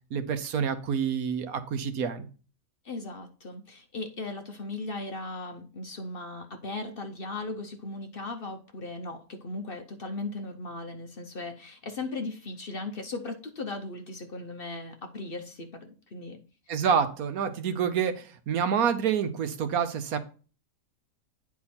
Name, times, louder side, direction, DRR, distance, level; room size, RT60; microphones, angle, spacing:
voice 1, 0.1-2.3 16.7-20.2, right 7 dB, 75° right, 10 dB, 1.3 m, -27 dB
voice 2, 2.8-16.4, left 2 dB, 45° left, 5 dB, 0.9 m, -37 dB
9.4 x 4.8 x 4.3 m, 0.38 s
omnidirectional pair, 1.6 m